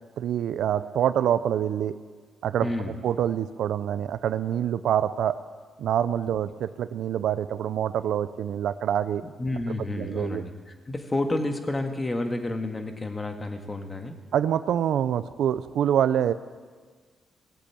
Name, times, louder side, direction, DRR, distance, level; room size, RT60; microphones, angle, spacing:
voice 1, 0.2-1.9 2.4-5.4 5.8-9.2 10.0-10.4 14.3-16.3, right 10 dB, 80° right, 14 dB, 0.5 m, -26 dB
voice 2, 2.6-2.9 9.4-14.2, left 2 dB, 25° left, 6 dB, 1.8 m, -30 dB
18.0 x 8.2 x 8.7 m, 1.5 s
cardioid pair, 90°, 0 cm